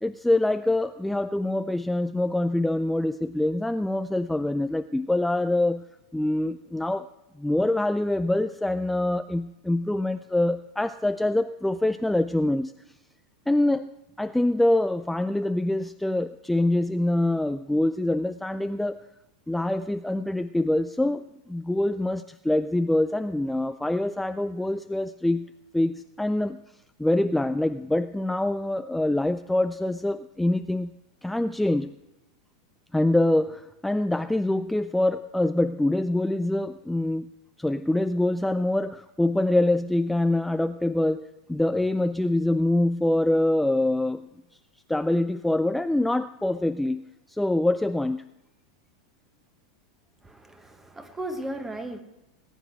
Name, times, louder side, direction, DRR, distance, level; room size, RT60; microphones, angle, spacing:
voice 1, 0.0-5.8 6.1-7.1 7.4-12.7 13.5-13.9 14.2-19.0 19.5-25.5 25.7-26.6 27.0-30.9 31.2-31.9 32.9-37.3 37.6-44.2 44.9-47.0 47.3-48.2, left 1 dB, 5° left, 11 dB, 0.3 m, -25 dB
voice 2, 50.2-52.0, right 1 dB, 10° right, 8 dB, 1.4 m, -36 dB
19.0 x 9.2 x 4.6 m, 0.97 s
figure-of-eight pair, 90°, 2 cm